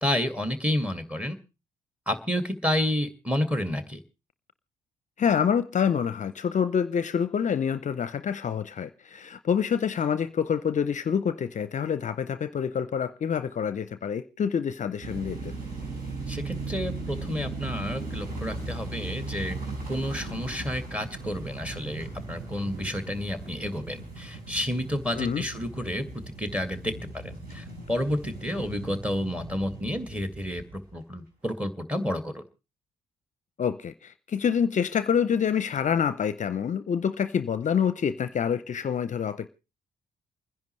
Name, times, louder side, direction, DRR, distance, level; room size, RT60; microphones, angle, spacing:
voice 1, 0.0-1.4 2.1-4.0 16.3-19.6 19.9-26.0 26.4-32.4, left 1 dB, 5° right, 2.2 m, -30 dB
voice 2, 5.2-15.5 25.1-25.4 33.6-39.5, left 7 dB, 45° left, 0.6 m, -27 dB
sound 1, 15.0-30.9, right 3 dB, 55° right, 5.0 m, -38 dB
29.0 x 10.5 x 3.2 m
hypercardioid pair, 45°, 17 cm